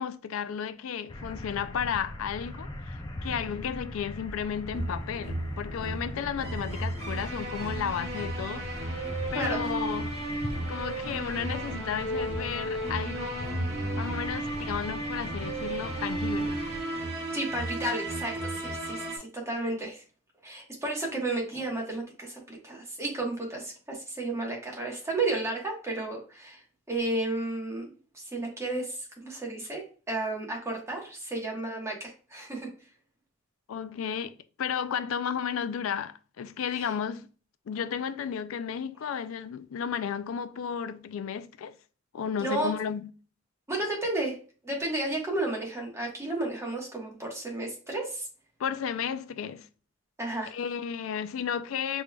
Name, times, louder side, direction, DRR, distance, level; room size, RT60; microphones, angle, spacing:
voice 1, 0.0-9.0 9.3-10.2 10.7-16.6 33.7-37.3 37.7-41.8 42.1-43.1 48.6-49.7 50.5-52.0, left 7 dB, 85° left, 0.4 m, -33 dB
sound 1, 1.1-16.8, left 1 dB, 20° left, 0.5 m, -41 dB
sound 2, 4.7-19.2, right 1 dB, 30° right, 1.4 m, -34 dB
voice 2, 17.3-20.0 20.4-26.6 26.9-32.7 36.7-36.9 42.4-42.8 43.7-44.4 44.6-48.3 50.2-50.5, right 2 dB, 15° right, 1.2 m, -32 dB
5.1 x 3.1 x 2.2 m
head